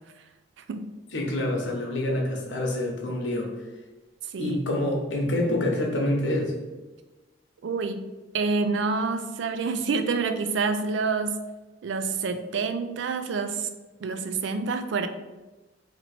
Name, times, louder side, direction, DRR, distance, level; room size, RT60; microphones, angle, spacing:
voice 1, 1.1-3.5 4.4-6.5, left 1 dB, 80° left, 0 dB, 0.9 m, -26 dB
voice 2, 7.6-8.1 8.3-11.4 11.8-13.7 14.0-15.1, right 4 dB, 75° right, 9 dB, 0.4 m, -27 dB
3.0 x 2.8 x 4.2 m, 1.2 s
head